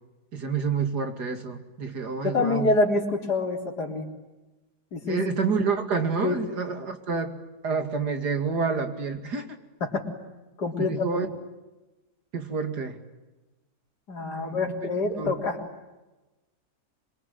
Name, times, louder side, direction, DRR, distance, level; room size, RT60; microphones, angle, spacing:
voice 1, 0.3-2.7 5.1-7.4 7.6-9.5 10.8-11.3 12.3-13.0 14.3-14.6 15.1-15.3, right 5 dB, 75° right, 6 dB, 3.1 m, -28 dB
voice 2, 2.2-4.1 4.9-5.2 6.2-6.4 9.8-10.1 10.6-11.2 14.1-15.6, left 3 dB, 80° left, 2 dB, 4.2 m, -26 dB
26.0 x 23.5 x 9.6 m, 1.1 s
omnidirectional pair, 1.7 m